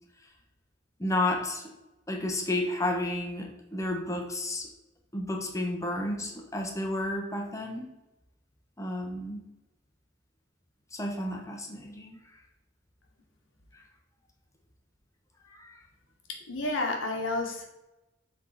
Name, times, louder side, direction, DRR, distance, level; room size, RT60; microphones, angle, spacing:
voice 1, 1.0-1.6 2.1-4.7 5.1-7.9 8.8-9.5 10.9-12.2 15.5-15.7, left 1 dB, 15° left, 1 dB, 1.0 m, -32 dB
voice 2, 16.5-17.7, left 2 dB, 90° left, 1 dB, 1.4 m, -30 dB
7.3 x 3.6 x 4.0 m, 0.98 s
head